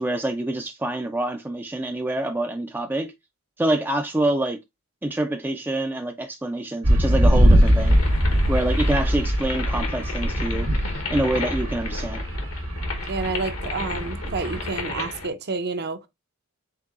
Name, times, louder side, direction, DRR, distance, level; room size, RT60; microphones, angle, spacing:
voice 1, 0.0-3.1 3.6-4.6 5.0-8.0 8.5-10.7 11.1-12.2, right 1 dB, 10° right, 0.3 m, -26 dB
sound 1, 6.8-14.9, equal, 80° right, 1.3 m, -22 dB
sound 2, 7.6-15.3, left 4 dB, 70° left, 1.0 m, -34 dB
voice 2, 13.1-16.1, right 4 dB, 50° right, 0.6 m, -29 dB
4.5 x 3.8 x 2.4 m
head